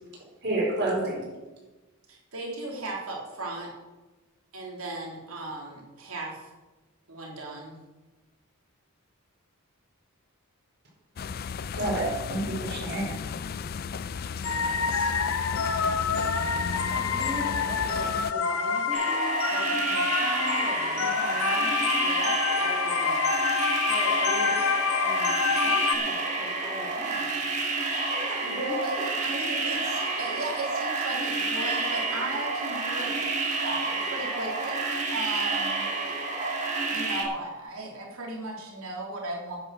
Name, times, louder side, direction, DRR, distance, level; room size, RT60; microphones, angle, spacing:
voice 1, 0.4-1.2 11.7-13.1, right 1 dB, 50° right, -2 dB, 4.7 m, -28 dB
voice 2, 2.1-3.7 4.5-6.5 7.1-7.8 14.4-15.1 20.9-22.3 22.6-23.3 27.9-33.1 33.6-34.8 35.1-35.9 36.9-39.6, right 2 dB, 80° right, -1 dB, 3.2 m, -36 dB
sound 1, 11.2-18.3, left 6 dB, 45° left, 0.4 m, -34 dB
sound 2, 14.4-26.0, left 5 dB, 70° left, 0.9 m, -27 dB
voice 3, 16.9-22.2 23.8-24.7 25.0-25.3 25.6-27.3 28.5-29.1, left 1 dB, 10° right, -2 dB, 2.1 m, -40 dB
sound 3, 18.9-37.2, right 3 dB, 35° right, 2.2 m, -29 dB
9.8 x 9.6 x 6.4 m, 1.2 s
head